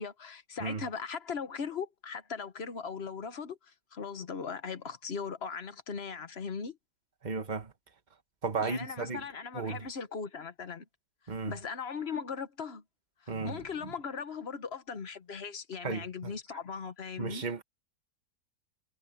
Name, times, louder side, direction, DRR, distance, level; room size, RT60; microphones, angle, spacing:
voice 1, 0.0-3.6 3.9-6.8 8.6-10.8 11.5-12.8 13.2-17.4, left 5 dB, 45° left, 1.3 m, -39 dB
voice 2, 7.2-7.7 8.4-9.2 9.5-9.8 11.3-11.6 13.3-13.9 15.8-16.3 17.2-17.6, right 4 dB, 30° right, 1.6 m, -35 dB
omnidirectional pair, 1.7 m